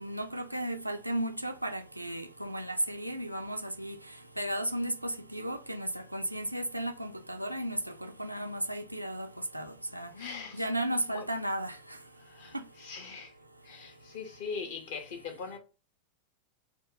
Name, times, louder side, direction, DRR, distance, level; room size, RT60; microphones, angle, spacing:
voice 1, 0.0-4.0 4.4-9.3 9.5-10.1 10.6-11.7, right 1 dB, 85° right, 0.3 m, -34 dB
voice 2, 10.1-10.6 11.1-11.3 12.2-13.4 13.6-15.6, left 5 dB, 55° left, 0.9 m, -41 dB
2.7 x 2.3 x 3.8 m
figure-of-eight pair, 90°, 0 cm